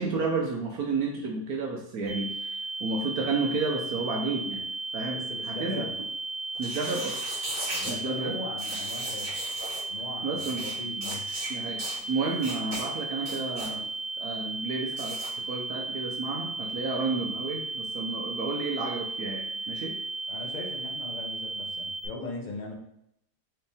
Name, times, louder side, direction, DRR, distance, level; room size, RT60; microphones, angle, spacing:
voice 1, 0.0-4.6 4.9-5.9 6.6-7.2 7.9-8.3 10.2-10.6 10.9-11.0 11.5-13.9 14.2-15.2 15.5-19.9, right 4 dB, 70° right, 1 dB, 1.1 m, -31 dB
sound 1, 2.1-22.1, right 3 dB, 10° right, 0.9 m, -35 dB
voice 2, 5.1-5.9 7.7-9.3 9.9-11.2 20.3-22.7, left 3 dB, 45° left, 0 dB, 0.6 m, -39 dB
sound 2, 6.5-8.0 8.6-9.8 10.4-10.7 11.0-11.5 11.8-12.0 12.4-12.8 13.2-13.7 14.9-15.3, right 1 dB, 35° right, 1.6 m, -37 dB
4.7 x 3.2 x 3.4 m, 0.76 s
omnidirectional pair, 1.7 m